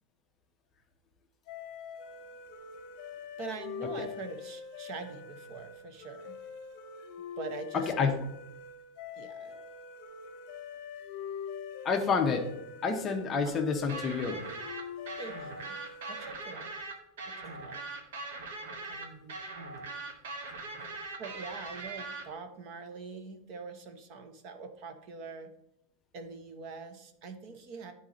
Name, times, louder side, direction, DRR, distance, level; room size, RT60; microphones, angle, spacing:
sound 1, 1.5-16.5, left 6 dB, 35° left, 0.9 m, -44 dB
voice 1, 3.4-6.4 7.4-8.2 9.2-9.6 13.4-13.5 15.2-15.8 16.1-16.7 17.4-17.8 18.9-19.3 20.7-20.8 21.2-25.5 26.1-27.9, right 4 dB, 35° right, 7 dB, 0.7 m, -44 dB
voice 2, 7.7-8.1 11.8-12.5 12.8-14.4, left 5 dB, 20° left, 4 dB, 0.6 m, -28 dB
sound 2, 13.9-22.2, right 3 dB, 90° right, 1.4 m, -41 dB
10.5 x 4.1 x 3.8 m, 0.80 s
supercardioid pair, 180°, 0 cm